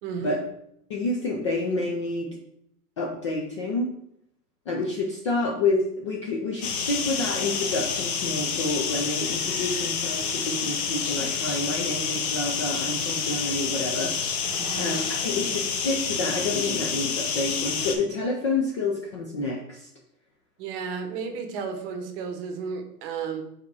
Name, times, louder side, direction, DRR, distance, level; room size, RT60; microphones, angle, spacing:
voice 1, 0.0-0.4 14.6-14.9 20.6-23.4, right 6 dB, 35° right, 6 dB, 1.0 m, -33 dB
voice 2, 0.9-2.3 3.0-3.9 4.7-19.9, left 2 dB, 20° left, -1 dB, 0.3 m, -29 dB
sound 1, 6.6-17.9, left 6 dB, 60° left, 1.3 m, -28 dB
5.0 x 4.1 x 4.7 m, 0.74 s
hypercardioid pair, 125°, 48 cm